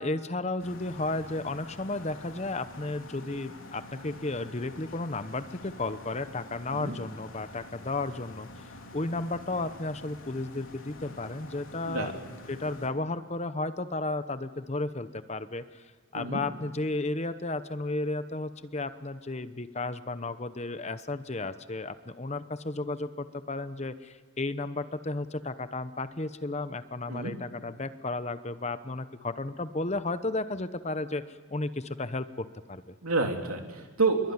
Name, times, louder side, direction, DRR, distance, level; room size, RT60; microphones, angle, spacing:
voice 1, 0.0-8.5 8.9-12.1 12.5-15.8 16.1-32.9, left 2 dB, 30° left, 12 dB, 0.9 m, -33 dB
sound 1, 0.6-12.9, left 2 dB, 65° left, 3.8 m, -47 dB
voice 2, 33.0-34.3, right 3 dB, 80° right, 3 dB, 3.4 m, -28 dB
25.5 x 22.5 x 9.6 m, 1.4 s
head